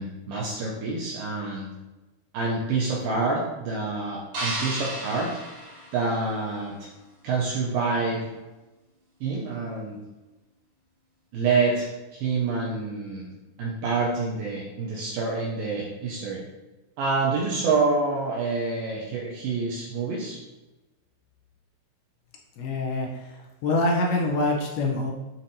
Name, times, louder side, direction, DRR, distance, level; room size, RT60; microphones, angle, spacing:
voice 1, 0.0-1.7 2.3-5.3 5.9-6.9 7.2-8.3 9.2-10.0 11.3-13.3 13.6-16.4 17.0-20.4, right 4 dB, 85° right, -3 dB, 2.1 m, -27 dB
sound 1, 4.3-6.6, right 1 dB, 65° right, 2.4 m, -34 dB
voice 2, 22.6-23.3 23.6-25.1, left 2 dB, 80° left, 1 dB, 2.4 m, -25 dB
7.3 x 2.7 x 2.5 m, 1.1 s
omnidirectional pair, 4.6 m